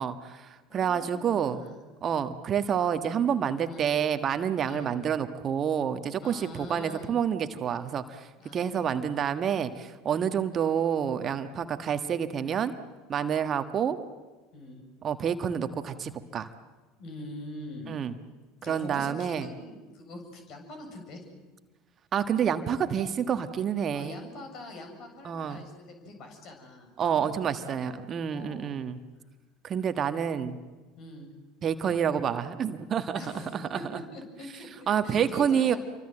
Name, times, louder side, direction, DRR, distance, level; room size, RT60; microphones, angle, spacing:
voice 1, 0.0-1.6 2.0-12.7 13.1-14.0 15.0-16.5 17.9-18.1 18.7-19.5 22.1-24.2 25.2-25.6 27.0-29.0 29.6-30.6 31.6-33.2 33.5-34.0 34.9-35.8, right 8 dB, 35° right, 9 dB, 1.5 m, -28 dB
voice 2, 0.7-1.8 3.7-4.0 4.6-4.9 6.2-7.1 8.4-8.9 14.5-14.8 17.0-17.9 18.6-21.2 23.9-28.7 31.0-31.3 33.1-35.8, left 1 dB, 50° left, 4 dB, 7.2 m, -44 dB
28.5 x 24.5 x 7.9 m, 1.2 s
figure-of-eight pair, 70°, 0 cm